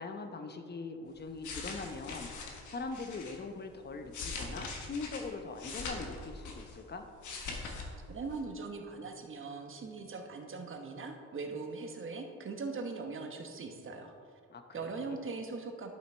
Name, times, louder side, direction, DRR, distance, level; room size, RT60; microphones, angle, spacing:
voice 1, 0.0-7.1 14.5-15.2, left 3 dB, 35° left, 6 dB, 1.0 m, -42 dB
sound 1, 1.2-3.4 3.9-6.8 7.1-7.9 8.2-8.4, left 4 dB, 75° left, 1.4 m, -42 dB
voice 2, 8.1-14.1 14.7-15.9, right 4 dB, 45° right, 4 dB, 1.2 m, -40 dB
11.5 x 5.7 x 4.4 m, 2.2 s
cardioid pair, 90°, 30 cm